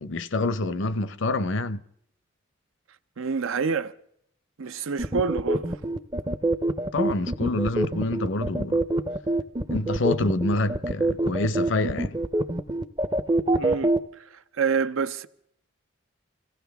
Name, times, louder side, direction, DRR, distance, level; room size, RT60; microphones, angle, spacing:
voice 1, 0.0-1.8 6.9-8.8 9.7-12.2, left 2 dB, 70° left, 0.6 m, -27 dB
voice 2, 3.2-3.9 4.6-5.8 13.5-13.9 14.3-15.3, right 5 dB, 85° right, 0.6 m, -27 dB
sound 1, 5.0-14.0, right 2 dB, 20° right, 0.5 m, -25 dB
25.0 x 15.5 x 3.5 m
head